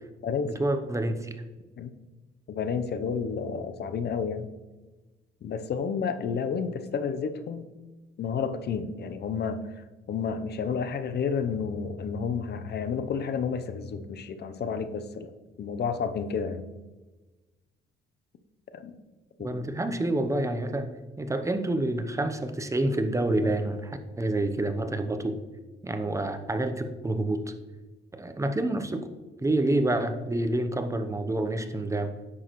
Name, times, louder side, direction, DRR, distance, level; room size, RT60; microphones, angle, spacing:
voice 1, 0.4-1.4 19.4-20.9 21.2-25.4 25.8-27.5 28.1-29.1 29.4-32.1, right 1 dB, 15° right, 8 dB, 0.8 m, -28 dB
voice 2, 2.5-4.5 5.4-7.7 8.2-9.6 10.1-15.3 15.6-16.6 18.7-19.0 19.4-19.6, left 6 dB, 55° left, 10 dB, 0.8 m, -30 dB
9.5 x 6.3 x 3.1 m, 1.2 s
cardioid pair, 90°, 20 cm